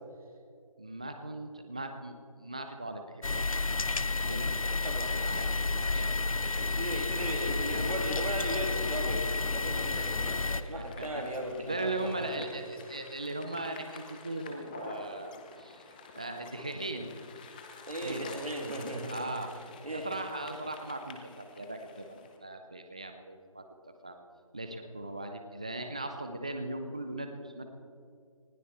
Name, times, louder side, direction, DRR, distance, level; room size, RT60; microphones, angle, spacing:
voice 1, 0.8-2.1 2.4-3.8 4.1-4.5 4.9-6.7 7.7-8.0 10.0-10.2 11.7-15.3 15.6-15.8 16.1-17.1 18.0-18.4 19.1-19.5 19.9-23.6 24.0-24.2 24.5-27.6, right 2 dB, 10° right, 6 dB, 0.4 m, -39 dB
sound 1, 3.2-10.6, left 3 dB, 70° left, 0.8 m, -31 dB
voice 2, 6.6-12.5 17.9-19.3 19.8-20.1, right 1 dB, 80° right, 2 dB, 2.8 m, -37 dB
sound 2, 7.0-22.4, left 5 dB, 15° left, 0.7 m, -50 dB
19.5 x 15.0 x 4.1 m, 2.3 s
figure-of-eight pair, 160°, 18 cm